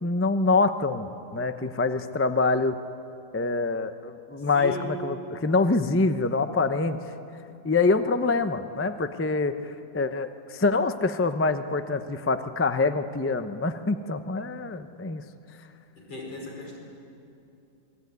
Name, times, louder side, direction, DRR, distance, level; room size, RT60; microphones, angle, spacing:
voice 1, 0.0-2.8 3.3-7.0 7.6-15.2, left 3 dB, 20° left, 9 dB, 0.3 m, -25 dB
voice 2, 4.5-5.0 16.0-16.8, left 3 dB, 90° left, -1 dB, 6.3 m, -37 dB
28.0 x 21.5 x 9.6 m, 2.6 s
omnidirectional pair, 2.0 m